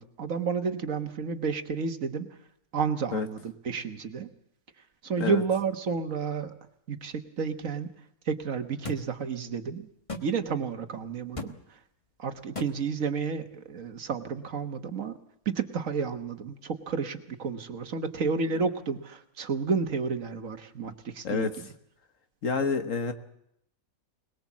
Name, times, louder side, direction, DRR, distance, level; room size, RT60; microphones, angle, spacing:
voice 1, 0.0-2.3 2.7-4.3 5.0-6.5 6.9-7.9 8.3-9.9 10.2-11.5 12.2-15.1 15.4-21.5, right 5 dB, 65° right, 7 dB, 1.6 m, -31 dB
sound 1, 8.8-9.0 10.1-10.3 11.4-11.5 12.6-12.7, left 2 dB, 25° left, 1.3 m, -35 dB
voice 2, 22.4-23.1, left 5 dB, 65° left, 7 dB, 1.7 m, -28 dB
22.0 x 20.5 x 7.3 m, 0.76 s
omnidirectional pair, 1.5 m